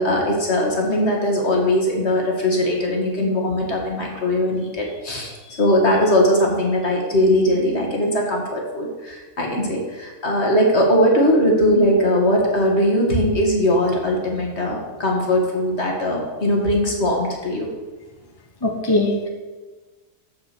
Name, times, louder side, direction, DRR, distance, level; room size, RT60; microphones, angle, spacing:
voice 1, 0.0-17.7, equal, 40° left, 0 dB, 2.3 m, -20 dB
voice 2, 18.6-19.3, left 2 dB, 20° left, 1 dB, 0.9 m, -20 dB
13.5 x 5.1 x 6.3 m, 1.3 s
omnidirectional pair, 1.7 m